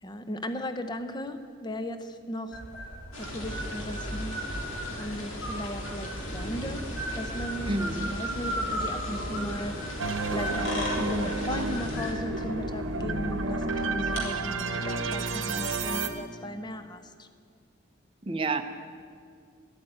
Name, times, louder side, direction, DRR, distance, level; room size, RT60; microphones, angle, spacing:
voice 1, 0.0-2.6 3.2-4.4 4.9-6.9 7.1-9.9 10.2-17.3, equal, 20° left, 9 dB, 0.6 m, -36 dB
sound 1, 2.5-14.2, equal, 65° left, 3.4 m, -36 dB
sound 2, 3.1-12.1, equal, 85° left, 2.1 m, -38 dB
voice 2, 7.7-8.1 18.2-18.6, right 2 dB, 25° right, 5 dB, 0.6 m, -29 dB
sound 3, 10.0-16.1, right 3 dB, 75° right, 0.9 m, -31 dB
11.5 x 8.3 x 9.8 m, 2.2 s
head